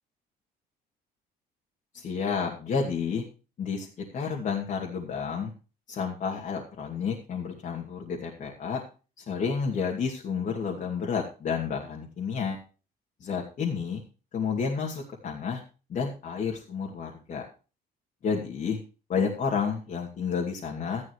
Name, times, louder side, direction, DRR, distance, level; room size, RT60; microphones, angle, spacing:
voice 1, 1.9-3.2 3.6-3.9 4.1-5.5 5.9-8.8 9.2-12.6 13.2-14.0 14.3-15.6 15.9-17.4 18.2-18.8 19.1-21.0, left 6 dB, 50° left, -1 dB, 2.5 m, -30 dB
13.5 x 11.5 x 3.2 m, 0.34 s
cardioid pair, 110°, 17 cm